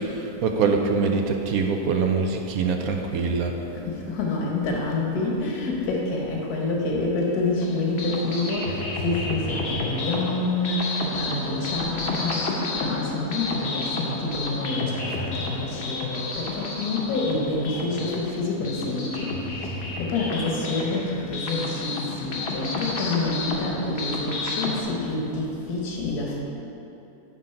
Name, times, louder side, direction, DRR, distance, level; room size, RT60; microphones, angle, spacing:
voice 1, 0.0-3.5, right 4 dB, 70° right, 3 dB, 1.0 m, -24 dB
voice 2, 3.9-10.9 11.1-12.4 12.8-19.3 19.7-26.4, left 2 dB, 75° left, -1 dB, 1.5 m, -28 dB
sound 1, 7.6-24.8, left 2 dB, 50° left, 0.9 m, -31 dB
9.7 x 3.7 x 5.7 m, 3.0 s
omnidirectional pair, 1.7 m